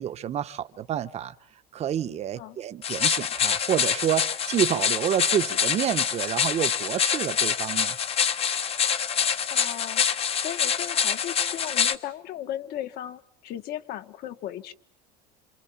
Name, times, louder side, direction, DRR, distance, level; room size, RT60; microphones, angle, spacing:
voice 1, 0.0-1.3 1.7-8.0, right 10 dB, 30° right, 1.1 m, -28 dB
sound 1, 2.8-12.0, left 7 dB, 30° left, 1.2 m, -26 dB
voice 2, 9.5-10.1 10.3-14.7, left 12 dB, 50° left, 1.7 m, -36 dB
27.5 x 27.5 x 7.3 m
supercardioid pair, 145°, 21 cm